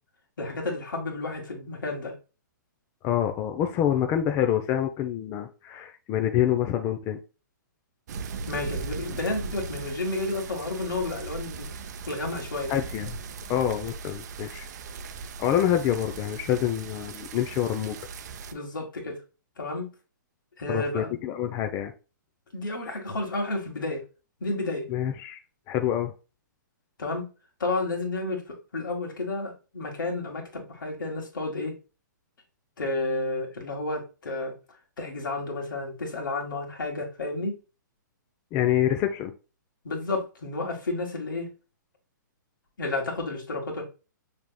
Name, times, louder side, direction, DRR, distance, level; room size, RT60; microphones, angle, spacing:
voice 1, 0.4-2.2 8.5-11.7 12.1-12.7 18.5-19.2 19.6-19.9 20.6-21.2 22.5-24.0 24.4-24.9 27.0-27.3 27.6-31.8 32.8-34.6 35.0-37.5 39.8-41.5 42.8-43.8, left 2 dB, 80° left, 1.8 m, -31 dB
voice 2, 3.0-7.2 12.7-13.1 13.5-14.7 15.4-18.0 20.7-21.9 24.9-25.4 25.7-26.1 38.5-39.3, left 10 dB, 25° left, 0.5 m, -26 dB
sound 1, 8.1-18.5, right 5 dB, 60° right, 0.5 m, -38 dB
5.8 x 3.4 x 2.2 m
hypercardioid pair, 135°, 11 cm